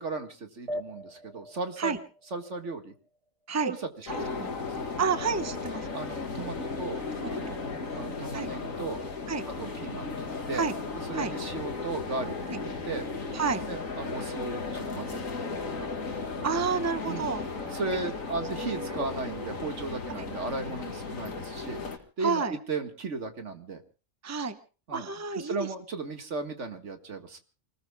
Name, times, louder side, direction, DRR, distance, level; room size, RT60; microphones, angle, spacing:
voice 1, 0.0-2.0 2.3-2.9 3.6-3.8 4.2-4.5 5.9-9.0 9.6-10.7 11.1-13.1 13.7-15.9 17.1-17.3 17.7-21.8 22.2-23.8 24.9-25.1 25.4-27.4, right 3 dB, 60° right, 6 dB, 2.1 m, -36 dB
sound 1, 0.7-3.6, equal, 30° right, 0.7 m, -42 dB
voice 2, 4.0-4.5 5.0-6.0 7.2-7.6 8.3-8.5 9.3-9.4 10.5-10.7 11.1-11.3 12.5-12.6 13.3-13.6 16.4-17.4 17.9-18.0 18.6-19.0 20.2-20.3 22.2-22.6 24.2-24.6 24.9-25.7, right 5 dB, 15° right, 9 dB, 1.0 m, -30 dB
sound 2, 4.1-22.0, left 4 dB, 85° left, 2.5 m, -35 dB
29.0 x 20.0 x 2.3 m, 0.35 s
omnidirectional pair, 1.4 m